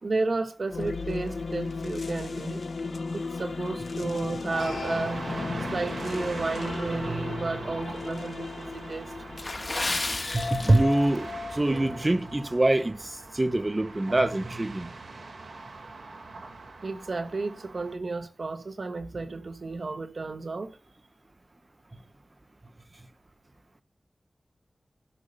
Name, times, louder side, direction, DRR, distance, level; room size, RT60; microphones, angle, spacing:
voice 1, 0.0-2.6 3.1-5.2 5.7-9.1 16.8-20.8, right 3 dB, 65° right, 1.3 m, -32 dB
sound 1, 0.7-12.8, left 4 dB, 85° left, 1.2 m, -35 dB
sound 2, 4.5-18.0, right 3 dB, 85° right, 1.8 m, -40 dB
Water / Splash splatter, 9.3-11.2 11.5-11.8 12.3-12.5 13.0-13.1, left 2 dB, 35° left, 1.2 m, -32 dB
voice 2, 10.3-14.9, right 1 dB, 25° right, 0.8 m, -25 dB
12.5 x 6.1 x 6.7 m
wide cardioid pair, 95°, 0 cm